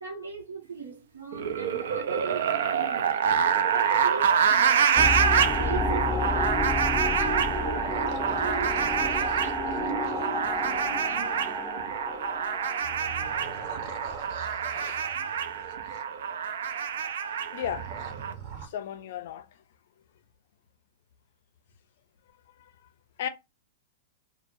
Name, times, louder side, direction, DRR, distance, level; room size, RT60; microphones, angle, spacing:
voice 1, 0.0-6.6 7.1-11.7, right 6 dB, 85° right, 0.8 m, -40 dB
sound 1, 1.3-18.3, right 7 dB, 70° right, 0.4 m, -27 dB
sound 2, 5.0-14.2, left 3 dB, 5° left, 0.5 m, -31 dB
sound 3, 7.4-11.5 12.8-16.0 17.6-18.7, right 5 dB, 50° right, 0.8 m, -43 dB
voice 2, 14.7-15.0 17.5-17.9 18.6-19.5 23.2-23.3, left 10 dB, 60° left, 0.4 m, -34 dB
2.1 x 2.0 x 3.0 m
hypercardioid pair, 110°, 0 cm